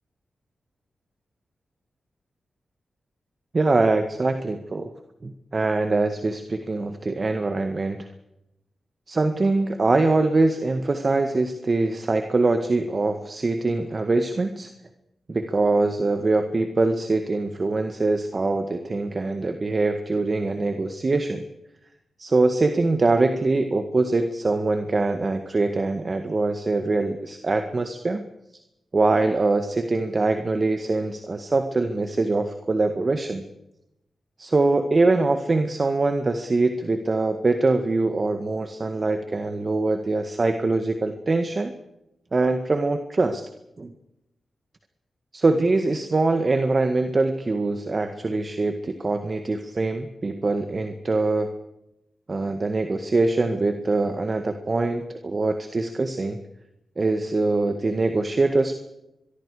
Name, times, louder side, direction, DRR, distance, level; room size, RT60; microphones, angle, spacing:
voice 1, 3.5-4.9 5.2-8.1 9.1-14.7 15.3-21.4 22.2-28.2 28.9-33.4 34.4-41.7 42.3-43.4 43.8-43.9 45.3-51.5 52.3-56.4 57.0-58.7, right 3 dB, 40° right, 7 dB, 1.8 m, -23 dB
24.0 x 23.5 x 5.0 m, 0.87 s
cardioid pair, 75°, 0 cm